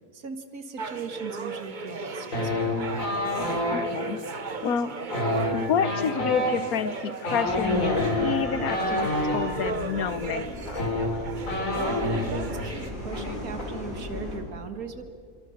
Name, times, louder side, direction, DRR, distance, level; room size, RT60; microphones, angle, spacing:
voice 1, 0.1-3.1 11.7-15.0, right 4 dB, 80° right, 7 dB, 2.2 m, -39 dB
sound 1, 0.8-12.9, right 4 dB, 35° right, 1.1 m, -36 dB
sound 2, 2.3-3.8 5.0-9.4 10.3-10.4 10.7-12.3 12.6-12.9 13.1-13.6, left 1 dB, 65° left, 4.6 m, -28 dB
voice 2, 3.7-4.2 4.6-4.9 5.5-10.8, left 7 dB, 80° left, 14 dB, 1.4 m, -29 dB
sound 3, 7.5-14.4, equal, 35° left, 6.8 m, -37 dB
27.5 x 24.0 x 6.6 m, 2.1 s
omnidirectional pair, 1.5 m